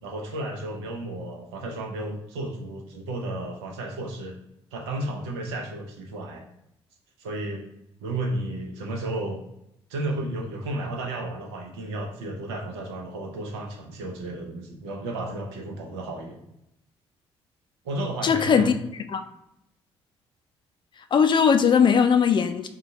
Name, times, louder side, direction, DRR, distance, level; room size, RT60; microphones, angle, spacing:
voice 1, 0.0-4.4 4.7-6.4 7.2-7.7 8.0-9.4 9.9-16.4 17.8-18.7, right 2 dB, 70° right, 1 dB, 0.8 m, -33 dB
voice 2, 18.2-18.7 19.1-19.2 21.1-22.7, left 6 dB, 35° left, 8 dB, 0.4 m, -19 dB
3.7 x 2.4 x 4.1 m, 0.81 s
figure-of-eight pair, 45°, 14 cm